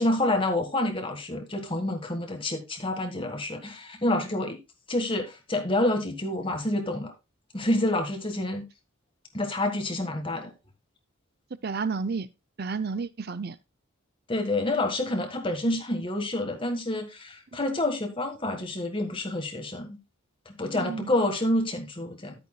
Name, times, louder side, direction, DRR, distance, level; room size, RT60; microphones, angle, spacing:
voice 1, 0.0-4.6 4.9-7.1 7.5-8.6 9.3-10.5 14.3-20.0 20.4-22.3, left 1 dB, 25° left, 1.6 m, -28 dB
voice 2, 11.6-12.3 12.6-13.6 15.6-15.8 20.7-21.1, right 4 dB, 50° right, 0.6 m, -31 dB
12.5 x 8.8 x 2.3 m
head